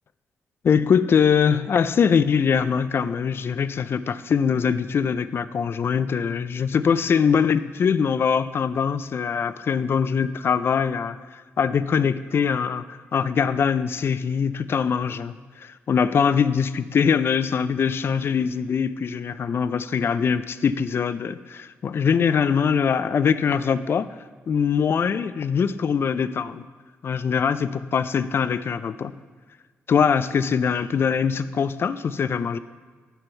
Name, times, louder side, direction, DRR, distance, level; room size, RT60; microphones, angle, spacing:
voice 1, 0.6-24.1 24.5-26.6 27.0-29.1 29.9-32.6, left 6 dB, 55° left, 14 dB, 0.3 m, -22 dB
7.8 x 4.4 x 5.6 m, 1.4 s
cardioid pair, 75°, 5 cm